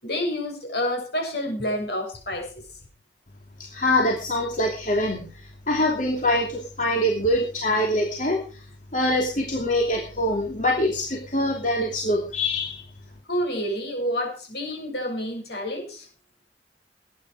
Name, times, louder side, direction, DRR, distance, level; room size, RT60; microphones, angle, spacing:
voice 1, 0.0-2.6 13.3-16.1, equal, 65° left, 3 dB, 6.9 m, -29 dB
voice 2, 3.7-5.2 5.7-8.4 8.9-12.8, left 1 dB, 45° left, 0 dB, 2.7 m, -24 dB
19.5 x 10.0 x 4.9 m, 0.36 s
head